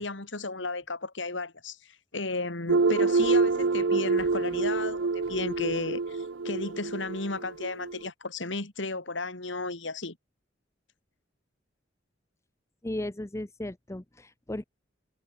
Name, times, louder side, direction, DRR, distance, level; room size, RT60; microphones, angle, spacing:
voice 1, 0.0-10.2, left 3 dB, 70° left, 2.7 m, -34 dB
sound 1, 2.7-8.1, right 4 dB, 75° right, 0.7 m, -26 dB
voice 2, 12.8-14.7, left 1 dB, 15° left, 0.8 m, -36 dB
head